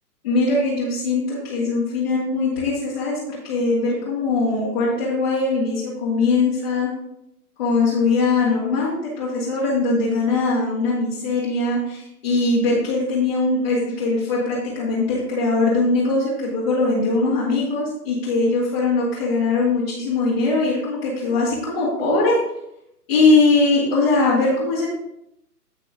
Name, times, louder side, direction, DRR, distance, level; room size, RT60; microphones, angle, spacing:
voice 1, 0.2-6.9 7.6-22.4 23.1-24.9, left 3 dB, 40° left, -7 dB, 2.3 m, -21 dB
9.2 x 5.9 x 3.8 m, 0.81 s
figure-of-eight pair, 130°, 48 cm